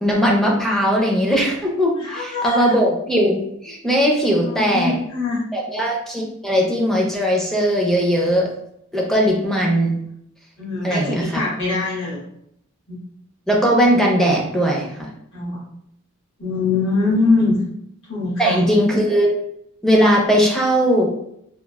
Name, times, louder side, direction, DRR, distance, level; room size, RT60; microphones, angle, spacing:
voice 1, 0.0-4.9 5.5-8.5 8.9-9.9 10.8-11.3 13.5-15.1 18.4-19.3 19.8-21.1, equal, ahead, -2 dB, 0.4 m, -19 dB
voice 2, 2.0-2.7 4.4-5.4 10.6-12.2 12.9-13.0 15.3-15.6 16.4-17.5 18.1-18.7, left 3 dB, 65° left, -7 dB, 1.2 m, -22 dB
3.1 x 2.0 x 2.2 m, 0.74 s
head